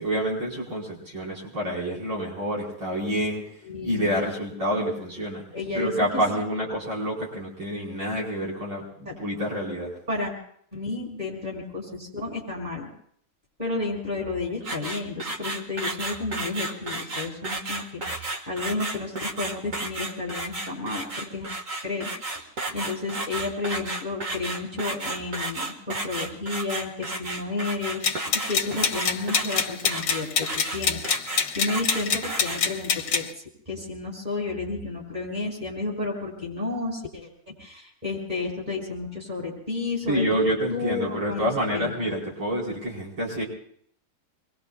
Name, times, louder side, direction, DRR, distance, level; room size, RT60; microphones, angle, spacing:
voice 1, 0.0-3.4 3.8-5.4 5.7-9.9 40.1-43.4, equal, 70° right, -4 dB, 5.4 m, -28 dB
voice 2, 3.6-4.1 5.5-5.9 9.0-9.1 10.1-10.3 10.7-12.9 13.6-21.5 21.8-22.1 22.3-22.5 22.7-31.0 31.5-37.3 37.6-40.2 40.7-42.0, left 3 dB, 20° right, -2 dB, 6.1 m, -32 dB
sound 1, 14.6-32.6, right 2 dB, 40° right, 1.9 m, -33 dB
sound 2, 28.0-33.3, left 6 dB, 60° left, 1.5 m, -26 dB
26.5 x 23.5 x 2.4 m, 0.63 s
omnidirectional pair, 2.3 m